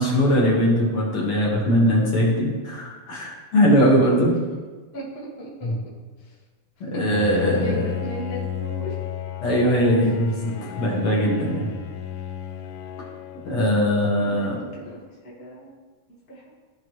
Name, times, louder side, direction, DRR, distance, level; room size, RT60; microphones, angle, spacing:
voice 1, 0.0-4.3 5.6-5.7 6.8-7.9 9.4-11.7 13.4-14.6, equal, 55° left, -4 dB, 2.1 m, -20 dB
voice 2, 4.9-5.7 6.2-6.4 6.9-7.0 7.6-9.0 14.2-15.0 15.2-15.7 16.3-16.4, right 2 dB, 30° left, -5 dB, 1.3 m, -37 dB
Bowed string instrument, 7.1-14.2, left 9 dB, 80° left, 1.4 m, -33 dB
14.5 x 5.1 x 3.1 m, 1.4 s
omnidirectional pair, 3.4 m